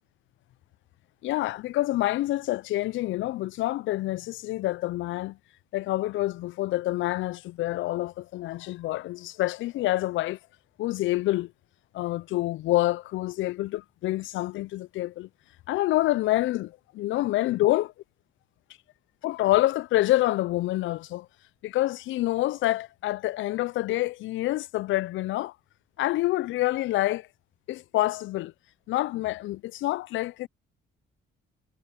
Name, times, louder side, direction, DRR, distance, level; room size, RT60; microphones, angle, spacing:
voice 1, 1.2-5.4 5.7-10.4 10.8-11.5 11.9-15.3 15.7-17.9 19.2-21.3 21.6-25.5 26.0-27.3 27.7-28.5 28.9-30.5, left 16 dB, 75° left, 0.4 m, -27 dB
cardioid pair, 90°, 20 cm